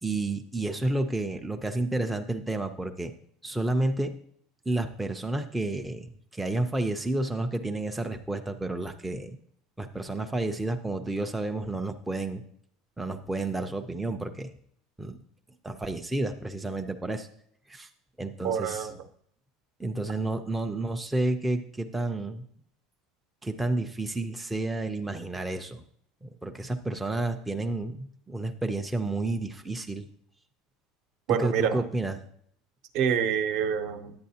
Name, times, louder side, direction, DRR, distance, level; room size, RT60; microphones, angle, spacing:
voice 1, 0.0-3.1 3.4-4.2 4.7-9.4 9.8-12.4 13.0-14.5 15.0-15.2 15.6-17.3 17.7-17.9 18.2-18.9 19.8-22.4 23.4-25.8 26.2-30.1 31.3-32.2, right 2 dB, 5° right, 4 dB, 0.3 m, -30 dB
voice 2, 18.4-19.0 31.3-31.8 32.9-34.1, right 8 dB, 55° right, 8 dB, 0.7 m, -27 dB
10.5 x 8.4 x 2.8 m, 0.64 s
cardioid pair, 170°, 0 cm